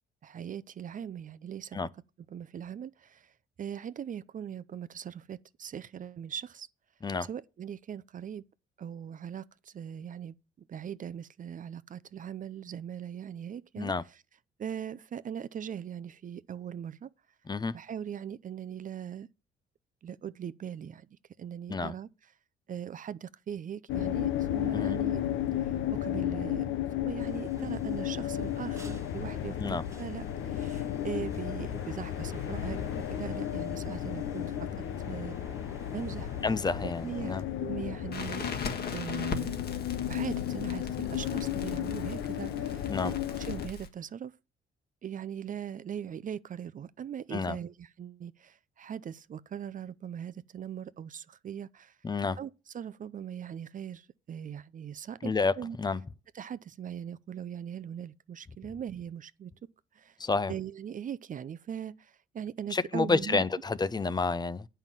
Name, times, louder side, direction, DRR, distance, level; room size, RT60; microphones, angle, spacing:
voice 1, 0.2-1.8 2.3-3.3 3.6-6.7 7.2-8.4 8.8-10.3 10.7-14.2 14.6-17.1 17.7-19.3 20.0-22.1 22.7-25.2 25.6-26.6 27.0-34.7 35.1-35.4 35.9-36.3 36.8-37.3 37.6-38.5 38.9-39.6 40.1-44.3 45.0-52.0 52.4-55.8 56.3-59.5 59.9-60.2 60.5-63.4, right 8 dB, 40° right, 0.5 m, -40 dB
sound 1, 23.9-43.7, left 11 dB, 80° left, 0.7 m, -33 dB
sound 2, 27.2-37.4, right 2 dB, 15° right, 1.2 m, -51 dB
voice 2, 36.4-37.4 42.9-43.1 47.3-47.6 52.0-52.4 55.2-55.5 55.8-56.0 60.2-60.5 62.7-64.7, left 4 dB, 20° left, 0.6 m, -29 dB
Crackle, 38.1-43.9, left 4 dB, 55° left, 1.6 m, -40 dB
8.9 x 5.6 x 7.5 m
cardioid pair, 90°, 20 cm